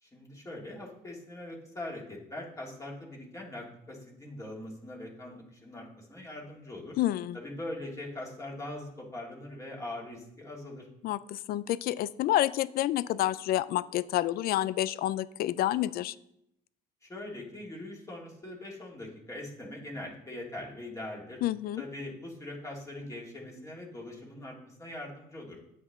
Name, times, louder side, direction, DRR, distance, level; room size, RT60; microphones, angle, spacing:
voice 1, 0.0-7.0 7.3-10.9 17.0-21.4 21.8-25.6, left 1 dB, 20° left, -2 dB, 2.4 m, -42 dB
voice 2, 7.0-7.4 11.0-16.1 21.4-21.8, left 13 dB, 65° left, 18 dB, 0.4 m, -29 dB
9.2 x 8.0 x 3.6 m, 0.77 s
cardioid pair, 110°, 17 cm